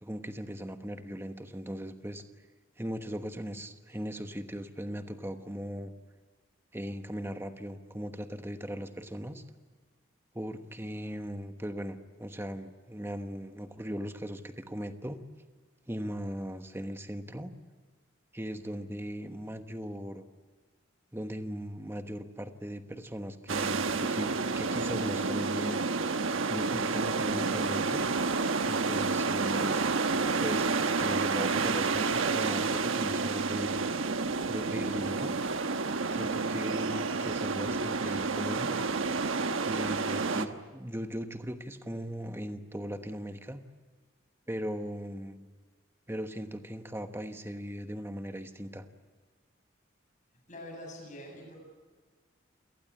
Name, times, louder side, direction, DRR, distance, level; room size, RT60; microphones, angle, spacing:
voice 1, 0.0-2.2 2.8-5.9 6.7-9.4 10.3-15.2 15.9-17.5 18.3-20.2 21.1-26.2 26.5-28.0 28.6-29.8 30.4-34.2 34.5-35.3 36.1-38.7 39.7-43.6 44.5-45.5 46.1-48.8, equal, 10° right, 8 dB, 1.2 m, -38 dB
sound 1, 23.5-40.5, right 4 dB, 80° right, 1.2 m, -30 dB
voice 2, 50.5-51.6, left 1 dB, 40° left, 1 dB, 7.9 m, -44 dB
28.0 x 18.5 x 8.8 m, 1.4 s
head